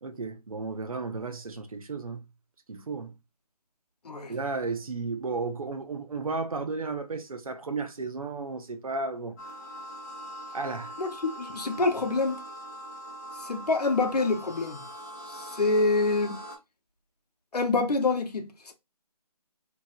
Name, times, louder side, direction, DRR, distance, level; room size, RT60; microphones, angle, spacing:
voice 1, 0.0-2.2 2.7-3.1 4.3-9.4 10.5-11.0, right 3 dB, 60° right, 0.7 m, -33 dB
Sirens sound, 9.4-16.6, right 1 dB, 25° left, 0.7 m, -42 dB
voice 2, 11.0-12.4 13.4-14.8 15.3-16.4 17.5-18.7, left 3 dB, 75° left, 0.7 m, -26 dB
2.9 x 2.7 x 2.2 m
figure-of-eight pair, 175°, 20 cm